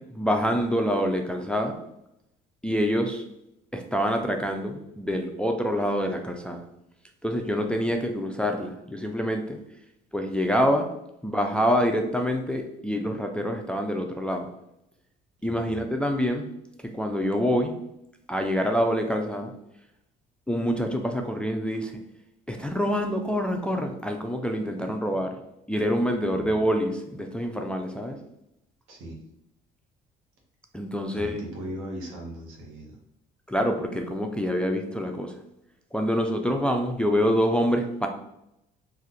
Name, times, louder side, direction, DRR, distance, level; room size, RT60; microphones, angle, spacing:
voice 1, 0.1-1.8 2.6-3.2 3.7-6.6 7.2-9.6 10.1-10.9 11.2-14.5 15.4-16.5 16.8-17.8 18.3-19.5 20.5-22.0 22.5-25.4 25.7-28.2 30.7-31.4 33.5-35.4 35.9-38.1, equal, 5° left, 4 dB, 0.4 m, -26 dB
voice 2, 15.4-15.8 24.8-25.2 26.3-26.6 28.9-29.2 31.1-33.0, right 1 dB, 75° right, 0 dB, 1.1 m, -39 dB
2.5 x 2.4 x 4.1 m, 0.82 s
supercardioid pair, 85°, 21 cm